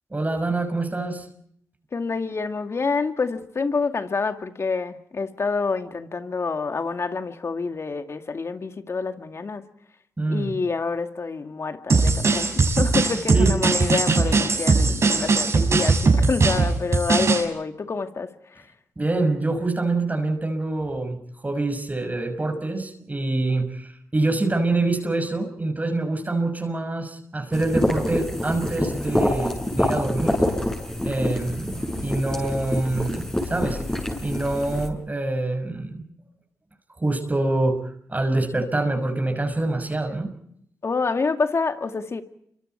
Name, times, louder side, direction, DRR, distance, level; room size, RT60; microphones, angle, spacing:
voice 1, 0.1-1.3 10.2-10.5 13.3-13.6 19.0-30.4 31.0-33.8 34.2-36.1 37.0-37.8 38.1-40.3, right 2 dB, 25° right, 5.7 m, -25 dB
voice 2, 1.9-9.7 10.3-18.7 40.8-42.2, left 4 dB, 50° left, 2.2 m, -27 dB
sound 1, 11.9-17.4, right 4 dB, 55° right, 6.3 m, -20 dB
sound 2, 27.5-34.9, left 1 dB, 10° left, 7.5 m, -26 dB
28.5 x 25.0 x 4.6 m
supercardioid pair, 45°, 6 cm